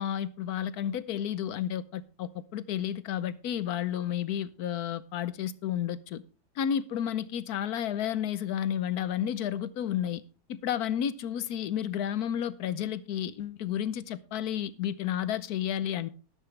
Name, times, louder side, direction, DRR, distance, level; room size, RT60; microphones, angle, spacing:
voice 1, 0.0-6.2 6.6-10.2 10.5-16.1, left 10 dB, 75° left, 1.2 m, -31 dB
12.5 x 12.0 x 3.3 m
omnidirectional pair, 1.7 m